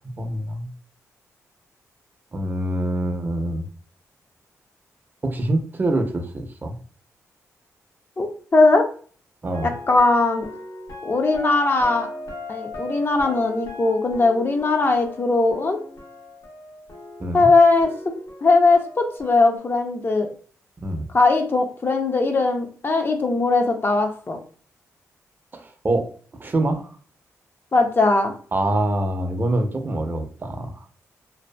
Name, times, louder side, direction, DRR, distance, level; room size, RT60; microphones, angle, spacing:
voice 1, 0.2-0.7 2.3-3.7 5.2-6.8 9.4-9.7 17.2-17.5 20.8-21.1 25.5-26.1 26.4-26.9 28.5-30.8, right 1 dB, 35° right, 5 dB, 0.6 m, -25 dB
voice 2, 8.2-8.8 9.9-10.5 11.0-12.1 12.5-15.8 17.3-17.9 18.4-20.3 21.1-24.4 27.7-28.3, left 3 dB, 35° left, 4 dB, 0.5 m, -19 dB
sound 1, 9.5-17.5 17.8-19.6, left 1 dB, 65° left, 0.9 m, -38 dB
2.7 x 2.3 x 2.2 m, 0.43 s
cardioid pair, 65°, 6 cm